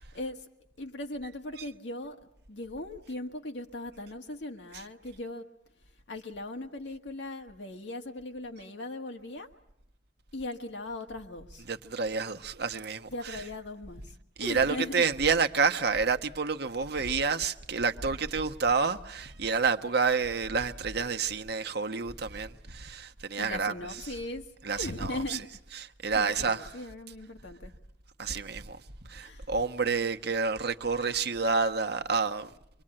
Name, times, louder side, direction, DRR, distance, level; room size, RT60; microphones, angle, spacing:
voice 1, 0.1-0.5 0.8-2.2 2.5-5.5 6.1-9.5 10.3-11.6 13.1-14.1 14.4-15.0 23.4-24.5 24.8-25.5 26.1-27.7 29.2-29.5, left 2 dB, 70° left, 1.5 m, -39 dB
voice 2, 11.7-13.4 14.4-23.7 24.6-25.4 25.7-26.7 28.2-28.8 29.1-32.5, right 5 dB, 60° right, 1.1 m, -29 dB
25.0 x 24.0 x 8.8 m
head